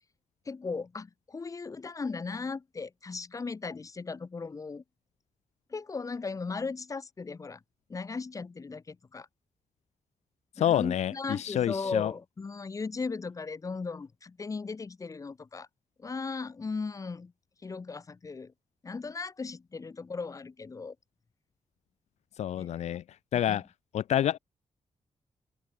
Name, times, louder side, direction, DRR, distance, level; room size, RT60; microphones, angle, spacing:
voice 1, 0.5-4.8 5.7-7.6 7.9-9.3 10.6-15.7 16.0-17.3 17.6-18.5 18.8-21.0 22.6-22.7 23.3-23.6, left 4 dB, 30° left, 2.2 m, -37 dB
voice 2, 10.6-12.1 22.4-23.0 23.3-23.6 23.9-24.4, left 11 dB, 80° left, 0.5 m, -28 dB
wide cardioid pair, 150°, 11 cm